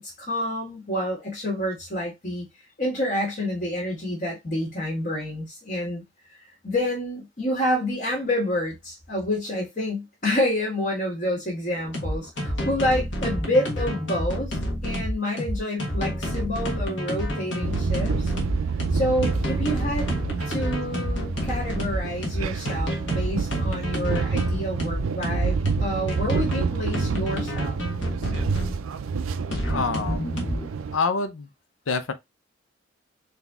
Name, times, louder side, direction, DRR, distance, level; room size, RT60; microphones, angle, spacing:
voice 1, 0.0-2.4 2.8-6.0 6.6-14.6 14.8-18.3 18.9-20.1 20.4-27.8, left 1 dB, 40° left, 1.6 m, -28 dB
sound 1, 11.8-28.8 29.5-30.7, equal, 60° left, 1.4 m, -29 dB
sound 2, 17.6-31.0, right 5 dB, 85° right, 0.4 m, -28 dB
voice 2, 29.7-30.3 30.9-31.5 31.9-32.1, left 4 dB, 80° left, 0.7 m, -26 dB
3.9 x 2.9 x 3.5 m
head